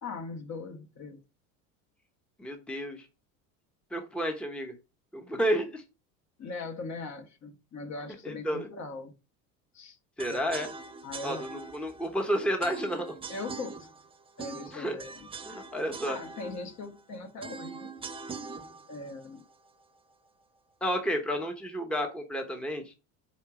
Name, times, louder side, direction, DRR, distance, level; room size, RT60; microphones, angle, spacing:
voice 1, 0.0-1.2 6.4-9.1 9.7-10.0 10.4-10.6 11.0-11.4 13.3-13.9 14.4-15.3 16.1-17.9 18.9-19.4, left 3 dB, 40° left, 1.4 m, -40 dB
voice 2, 2.4-3.1 3.9-4.7 5.1-5.8 8.2-8.7 10.2-10.7 11.2-13.2 14.7-15.0 15.4-16.2 20.8-22.9, equal, 5° left, 1.0 m, -31 dB
sound 1, 10.2-20.3, right 4 dB, 15° right, 0.5 m, -43 dB
4.7 x 4.5 x 4.8 m
supercardioid pair, 95°, 41 cm